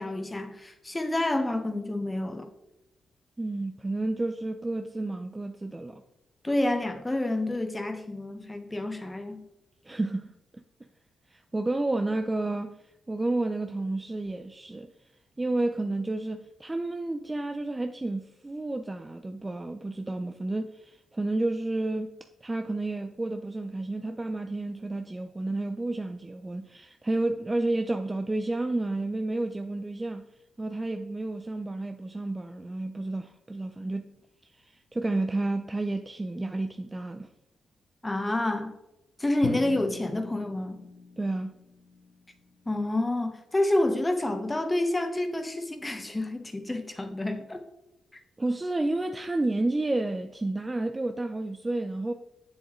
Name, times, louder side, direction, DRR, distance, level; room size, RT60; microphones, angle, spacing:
voice 1, 0.0-2.5 6.4-9.4 38.0-38.7 39.2-40.8 42.7-47.6, left 1 dB, 20° left, 1.2 m, -28 dB
voice 2, 3.4-6.0 9.8-10.3 11.3-12.8 13.1-14.9 15.4-30.3 30.6-34.2 34.6-37.3 41.2-41.5 48.4-52.1, right 2 dB, 20° right, 0.5 m, -31 dB
Drum, 39.4-43.2, left 5 dB, 70° left, 0.8 m, -41 dB
7.3 x 7.0 x 3.2 m
supercardioid pair, 60°, 0 cm